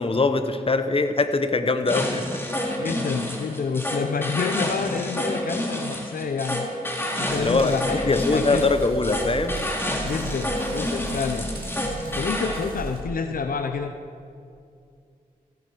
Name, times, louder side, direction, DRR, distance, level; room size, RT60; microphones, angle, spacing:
voice 1, 0.0-2.2 7.4-9.5, left 3 dB, 35° left, 9 dB, 1.0 m, -22 dB
sound 1, 1.9-12.7, left 1 dB, 15° left, 2.3 m, -29 dB
voice 2, 2.7-6.7 7.2-8.7 10.0-11.5 12.1-13.9, left 5 dB, 70° left, 7 dB, 0.7 m, -28 dB
sound 2, 7.3-13.0, right 2 dB, 70° right, 2.2 m, -36 dB
16.0 x 9.4 x 4.7 m, 2.3 s
cardioid pair, 45°, 16 cm